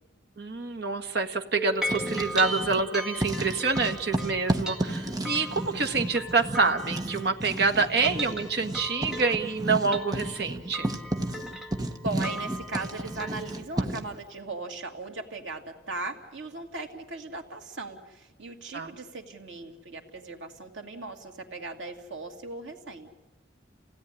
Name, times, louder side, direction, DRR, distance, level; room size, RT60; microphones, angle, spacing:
voice 1, 0.4-10.9 18.7-18.9, right 4 dB, 60° right, 5 dB, 1.7 m, -27 dB
sound 1, 1.6-7.5 7.9-13.6, right 1 dB, 5° right, 2.0 m, -38 dB
Writing, 1.7-2.9 3.2-14.2, right 1 dB, 20° right, 1.3 m, -33 dB
voice 2, 12.0-23.1, right 3 dB, 85° right, 3 dB, 2.6 m, -38 dB
29.0 x 17.0 x 10.0 m, 1.1 s
head